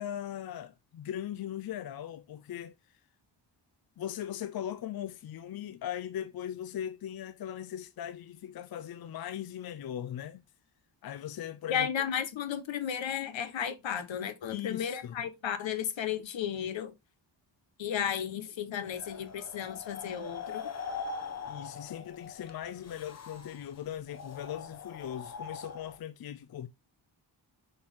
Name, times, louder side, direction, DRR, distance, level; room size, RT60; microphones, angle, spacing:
voice 1, 0.0-2.7 4.0-10.4 11.0-11.9 14.5-15.2 21.5-26.7, left 10 dB, 55° left, 0.6 m, -39 dB
voice 2, 11.7-16.9 17.8-20.7, left 8 dB, 85° left, 1.3 m, -34 dB
sound 1, 18.9-26.0, left 5 dB, 35° left, 1.0 m, -42 dB
6.7 x 4.4 x 3.7 m
wide cardioid pair, 170°, 44 cm